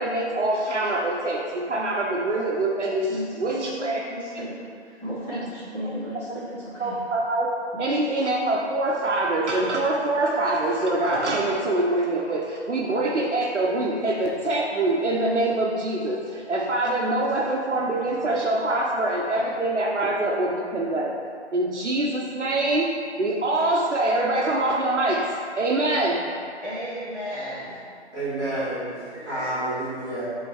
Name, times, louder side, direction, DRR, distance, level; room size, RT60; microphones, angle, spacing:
voice 1, 0.0-3.1 3.4-4.0 6.8-7.5 7.8-21.1 21.5-22.9 23.2-25.3 25.6-26.2, right 2 dB, 85° right, -2 dB, 0.9 m, -24 dB
voice 2, 3.1-7.0 7.7-7.9 26.6-27.8, equal, 5° left, -13 dB, 1.3 m, -34 dB
voice 3, 28.1-30.3, right 1 dB, 15° right, -13 dB, 1.5 m, -29 dB
8.9 x 3.7 x 3.1 m, 2.2 s
figure-of-eight pair, 150°, 34 cm